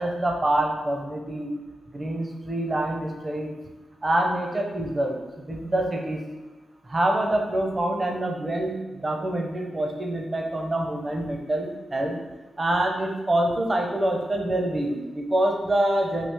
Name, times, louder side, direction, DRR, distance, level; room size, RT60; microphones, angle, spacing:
voice 1, 0.0-1.6 1.9-3.5 4.0-5.2 5.5-6.2 6.9-12.2 12.6-16.3, right 1 dB, 35° right, 2 dB, 0.6 m, -26 dB
3.1 x 2.4 x 3.5 m, 1.1 s
supercardioid pair, 45°, 0 cm